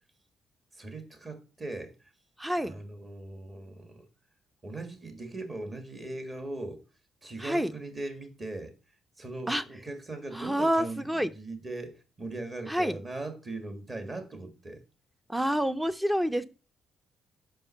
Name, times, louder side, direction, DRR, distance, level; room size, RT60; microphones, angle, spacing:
voice 1, 0.7-1.9 2.6-4.0 4.6-6.8 7.2-8.7 9.2-14.8, right 2 dB, 30° right, 1.7 m, -39 dB
voice 2, 2.4-2.8 7.4-7.7 9.5-9.6 10.3-11.3 12.7-13.0 15.3-16.5, equal, 5° right, 0.5 m, -28 dB
5.4 x 5.2 x 5.6 m
cardioid pair, 90°, 0 cm